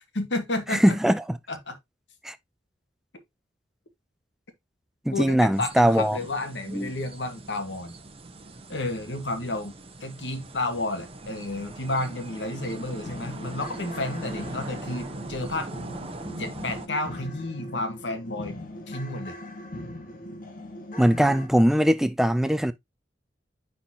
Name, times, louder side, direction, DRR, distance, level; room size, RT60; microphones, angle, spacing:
voice 1, 0.1-1.0 1.5-1.8 5.1-7.9 8.7-9.7 10.0-15.7 16.4-18.6 18.9-19.4, left 2 dB, 75° left, 1.6 m, -31 dB
voice 2, 0.7-1.2 2.2-2.4 5.1-6.2 6.7-6.9 20.9-22.7, equal, ahead, 0.4 m, -21 dB
sound 1, 5.5-16.9, right 2 dB, 35° right, 1.0 m, -41 dB
sound 2, 12.4-21.5, left 1 dB, 50° left, 1.7 m, -40 dB
9.7 x 4.3 x 2.8 m
head